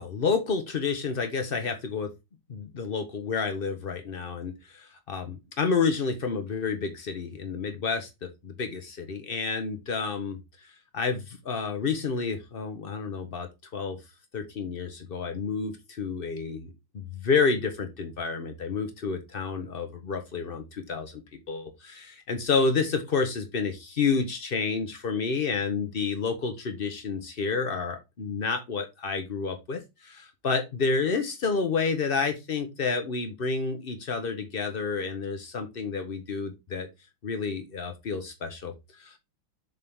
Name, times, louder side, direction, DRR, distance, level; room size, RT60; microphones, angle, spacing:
voice 1, 0.0-2.1 2.5-10.4 10.9-14.0 14.3-21.2 21.5-36.9 37.2-38.7 39.0-39.2, left 5 dB, 75° left, 7 dB, 0.5 m, -29 dB
6.9 x 4.1 x 3.5 m, 0.23 s
omnidirectional pair, 2.3 m